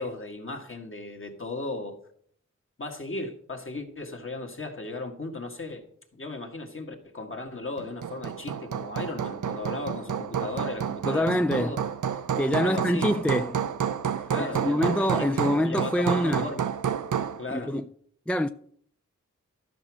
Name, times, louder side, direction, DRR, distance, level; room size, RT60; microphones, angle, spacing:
voice 1, 0.0-2.0 2.8-5.8 6.1-11.8 12.6-13.1 14.3-16.6 17.4-17.7, left 2 dB, 45° left, 1.8 m, -36 dB
Hammer, 7.8-17.4, right 8 dB, 85° right, 0.6 m, -30 dB
voice 2, 11.1-11.8 12.4-13.7 14.4-16.5 17.5-17.8 18.3-18.5, left 1 dB, 5° left, 0.3 m, -26 dB
12.5 x 5.9 x 6.2 m
wide cardioid pair, 75°, 30 cm